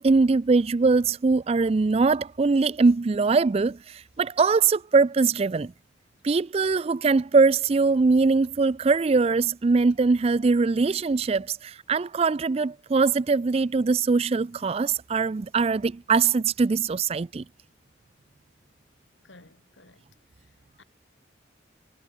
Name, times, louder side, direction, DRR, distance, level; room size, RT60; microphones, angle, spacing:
voice 1, 0.0-5.7 6.2-17.4, right 4 dB, 30° right, 0.4 m, -22 dB
voice 2, 19.2-20.0 20.4-20.5 20.8-20.9, left 2 dB, 75° left, 7.0 m, -54 dB
head